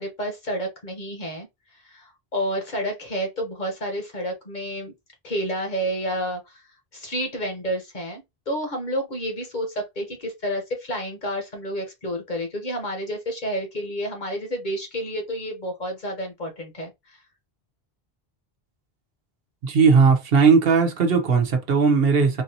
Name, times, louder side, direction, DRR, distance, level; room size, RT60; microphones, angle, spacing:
voice 1, 0.0-1.5 1.8-4.9 5.2-6.6 6.9-17.2, equal, 50° left, 1.1 m, -30 dB
voice 2, 19.6-22.4, right 5 dB, 70° right, 1.0 m, -18 dB
3.9 x 2.6 x 2.7 m
omnidirectional pair, 1.1 m